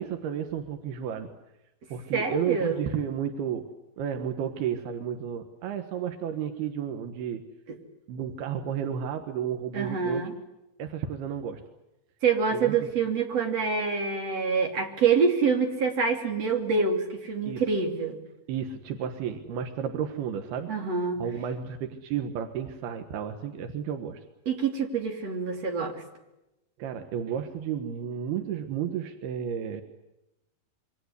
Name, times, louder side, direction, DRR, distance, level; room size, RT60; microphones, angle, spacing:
voice 1, 0.0-1.3 1.9-3.7 4.0-7.4 8.1-10.2 10.8-11.6 12.5-12.7 17.5-17.6 18.5-20.7 21.2-24.2 26.8-29.8, right 8 dB, 90° right, 6 dB, 3.5 m, -32 dB
voice 2, 2.1-2.8 9.7-10.3 12.2-18.2 20.7-21.2 24.5-26.0, right 5 dB, 45° right, 3 dB, 4.0 m, -26 dB
27.0 x 24.0 x 8.2 m, 0.93 s
omnidirectional pair, 4.4 m